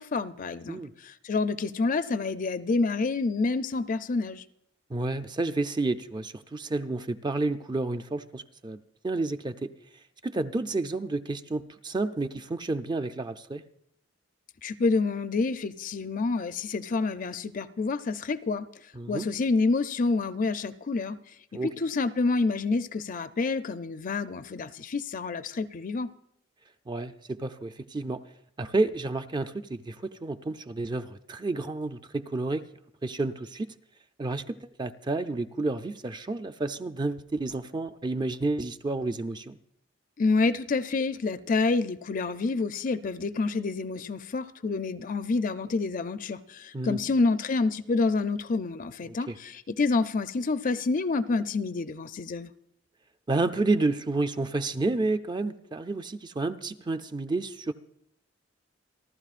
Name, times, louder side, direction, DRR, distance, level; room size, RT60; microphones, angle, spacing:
voice 1, 0.0-4.4 14.6-18.6 19.1-21.2 21.6-26.1 40.2-52.5, left 3 dB, 45° left, 0.5 m, -28 dB
voice 2, 4.9-8.8 9.0-9.7 10.2-13.6 18.9-19.2 21.5-21.7 26.9-28.2 28.6-32.6 33.0-33.7 34.2-39.6 46.7-47.0 49.1-49.4 53.3-57.7, right 2 dB, 25° right, 0.5 m, -30 dB
28.5 x 12.0 x 2.5 m
head